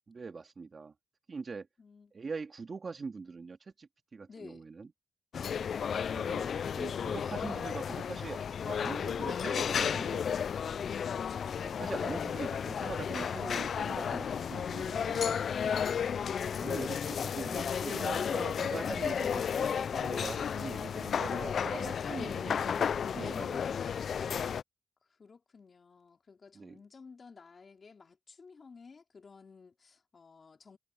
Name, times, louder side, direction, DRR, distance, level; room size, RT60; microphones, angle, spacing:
voice 1, 0.1-0.9 1.3-1.7 2.1-4.9 6.1-10.3 11.6-15.4 16.6-23.8 26.5-26.8, right 4 dB, 45° right, 2.4 m, -42 dB
voice 2, 1.8-2.1 4.3-4.7 25.0-30.8, left 5 dB, 45° left, 4.1 m, -55 dB
sound 1, 5.3-24.6, left 7 dB, 70° left, 0.3 m, -33 dB
cardioid pair, 85°, 0 cm